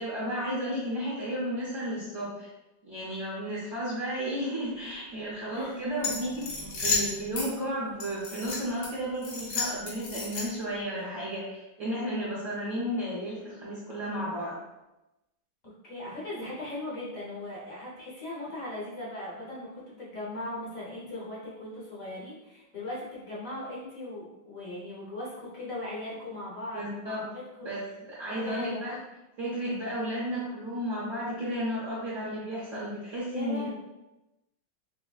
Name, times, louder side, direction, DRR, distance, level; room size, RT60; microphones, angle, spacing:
voice 1, 0.0-2.5 2.8-14.6 26.7-27.2 27.6-29.0 29.4-33.7, equal, 55° right, -8 dB, 0.9 m, -33 dB
voice 2, 5.5-5.8 15.6-27.7 28.3-28.8 33.3-33.7, left 1 dB, 50° left, -6 dB, 1.2 m, -39 dB
sound 1, 6.0-7.5 8.0-8.9 9.2-10.7, left 4 dB, 65° left, 1.6 m, -31 dB
5.7 x 2.1 x 2.3 m, 0.98 s
omnidirectional pair, 2.1 m